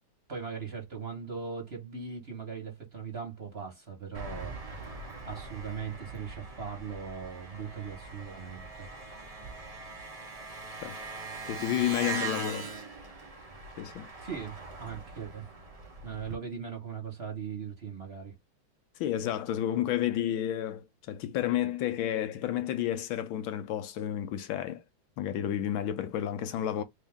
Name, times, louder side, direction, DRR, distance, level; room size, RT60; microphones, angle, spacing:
voice 1, 0.3-8.9 14.2-15.5 16.0-18.3, right 6 dB, 35° right, 1.3 m, -39 dB
Engine, 4.1-16.3, right 3 dB, 80° right, 0.3 m, -41 dB
voice 2, 11.5-12.7 13.8-14.1 19.0-24.8 25.2-26.8, left 11 dB, 80° left, 1.4 m, -31 dB
3.6 x 2.8 x 3.5 m
omnidirectional pair, 2.2 m